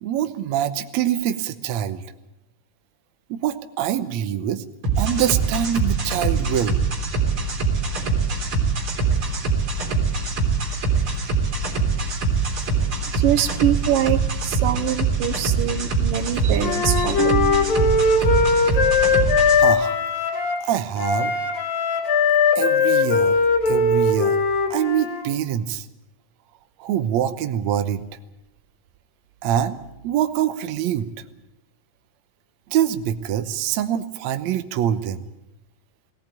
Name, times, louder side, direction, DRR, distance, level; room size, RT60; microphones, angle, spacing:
voice 1, 0.0-2.0 3.3-4.6 5.0-6.8 19.6-20.0 20.6-21.3 22.6-23.4 23.7-24.4 24.7-25.9 26.8-28.0 29.4-29.8 30.0-31.1 32.7-35.2, right 10 dB, 65° right, 9 dB, 2.0 m, -24 dB
sound 1, 4.8-19.6, right 4 dB, 40° right, 4.2 m, -23 dB
voice 2, 13.1-17.9, right 11 dB, 85° right, 10 dB, 2.7 m, -24 dB
Wind instrument woodwind instrument, 16.6-20.6 21.0-25.2, left 4 dB, 90° left, 3.8 m, -20 dB
19.0 x 17.5 x 9.0 m, 0.93 s
omnidirectional pair, 3.9 m